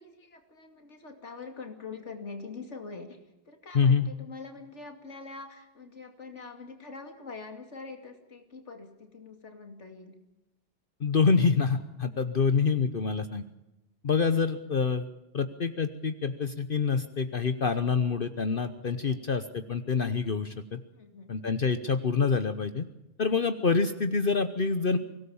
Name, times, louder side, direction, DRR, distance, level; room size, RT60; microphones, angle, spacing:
voice 1, 0.0-3.2 3.5-10.2 18.8-19.2 20.9-21.4, left 4 dB, 80° left, 4 dB, 2.9 m, -44 dB
voice 2, 3.7-4.1 11.0-13.4 14.0-15.1 15.3-20.8 21.3-22.8 23.2-25.0, left 5 dB, 50° left, 10 dB, 1.1 m, -26 dB
24.5 x 17.5 x 7.1 m, 0.94 s
omnidirectional pair, 1.2 m